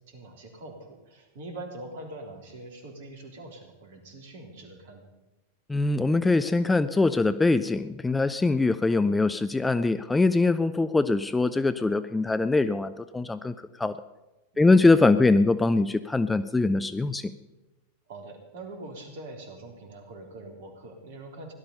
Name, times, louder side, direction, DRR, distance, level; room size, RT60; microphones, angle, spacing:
voice 1, 0.1-5.1 14.5-14.8 18.1-21.5, right 2 dB, 55° right, 2 dB, 3.5 m, -43 dB
voice 2, 5.7-14.0 14.6-17.3, left 3 dB, 10° left, 12 dB, 0.5 m, -23 dB
17.0 x 12.0 x 5.5 m, 1.0 s
figure-of-eight pair, 90°, 0 cm